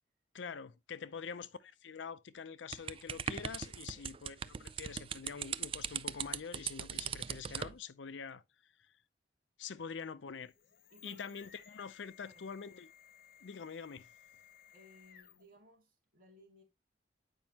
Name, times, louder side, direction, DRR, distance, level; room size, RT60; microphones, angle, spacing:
voice 1, 0.3-8.4 9.6-10.5 11.0-12.9 13.4-14.1, left 6 dB, 85° left, 0.5 m, -45 dB
voice 2, 1.0-1.4 3.8-4.1 10.9-11.5 12.2-12.4 14.3-14.4 14.7-16.6, equal, 50° right, 2.4 m, -62 dB
sound 1, 2.7-7.8, right 8 dB, 30° right, 0.3 m, -39 dB
sound 2, 10.3-15.6, left 10 dB, 55° left, 0.7 m, -60 dB
9.0 x 5.3 x 2.8 m
head